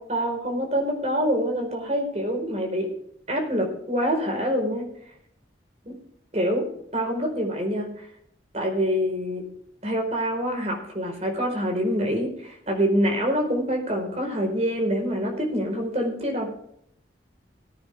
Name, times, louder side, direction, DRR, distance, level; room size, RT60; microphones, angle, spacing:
voice 1, 0.0-2.9 3.3-4.8 5.8-6.0 6.3-6.7 6.9-8.0 8.5-9.4 9.8-16.5, equal, 35° right, 2 dB, 4.9 m, -26 dB
19.5 x 9.7 x 3.6 m, 0.71 s
head